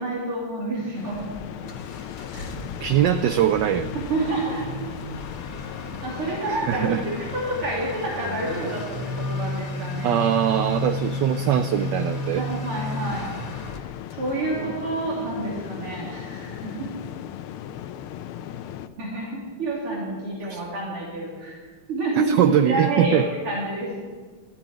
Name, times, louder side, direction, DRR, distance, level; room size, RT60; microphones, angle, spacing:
voice 1, 0.0-1.3 1.6-1.7 2.3-2.5 3.9-4.7 6.0-10.2 12.3-13.4 13.7-13.8 14.1-16.9 19.0-21.6 21.9-24.0, right 2 dB, 90° right, -4 dB, 3.9 m, -28 dB
sound 1, 0.9-18.9, left 10 dB, 80° left, 1.5 m, -38 dB
Motor vehicle (road) / Accelerating revving vroom, 1.1-13.8, left 2 dB, 45° left, 1.9 m, -33 dB
voice 2, 2.8-3.9 6.5-7.0 10.0-12.4 14.6-14.7 20.5-20.6 22.3-23.3, right 10 dB, 75° right, 10 dB, 1.0 m, -22 dB
13.0 x 8.9 x 9.6 m, 1.5 s
omnidirectional pair, 2.4 m